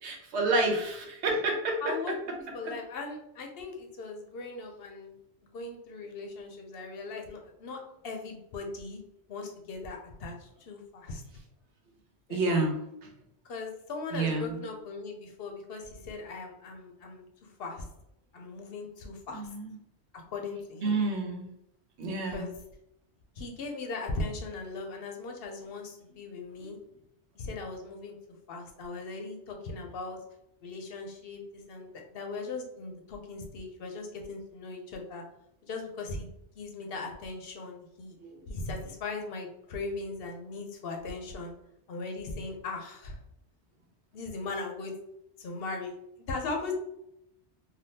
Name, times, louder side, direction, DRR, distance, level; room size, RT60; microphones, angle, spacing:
voice 1, 0.0-1.9 12.3-12.8 14.1-14.6 19.3-19.7 20.8-21.4 22.0-22.5 26.6-26.7, right 2 dB, 85° right, 1 dB, 1.0 m, -29 dB
voice 2, 1.8-5.1 5.5-9.0 9.3-11.2 12.3-12.6 13.5-17.9 18.3-19.4 20.3-21.0 22.3-22.5 23.4-26.8 27.4-28.1 28.5-30.2 30.6-35.2 35.6-36.3 36.6-38.2 38.5-41.5 41.9-43.2 44.1-44.9 45.4-45.9 46.3-46.7, left 3 dB, 65° left, 2 dB, 0.8 m, -39 dB
3.4 x 2.3 x 2.7 m, 0.79 s
omnidirectional pair, 1.1 m